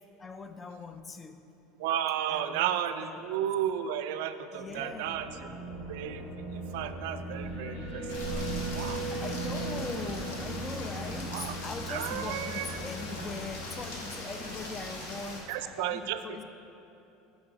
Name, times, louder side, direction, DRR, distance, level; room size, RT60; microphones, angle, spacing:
voice 1, 0.2-1.5 2.3-3.3 4.5-5.7 9.1-16.4, left 3 dB, 20° left, 0.3 m, -41 dB
voice 2, 1.8-5.5 5.9-6.2 6.5-8.1 8.3-9.0 11.3-11.5 11.9-12.8 15.5-16.2, right 10 dB, 75° right, 0.3 m, -33 dB
sound 1, 4.7-14.9, right 2 dB, 70° left, 1.6 m, -38 dB
Rain, 8.1-15.4, left 1 dB, 85° left, 1.2 m, -40 dB
6.9 x 5.3 x 4.5 m
supercardioid pair, 125°, 0 cm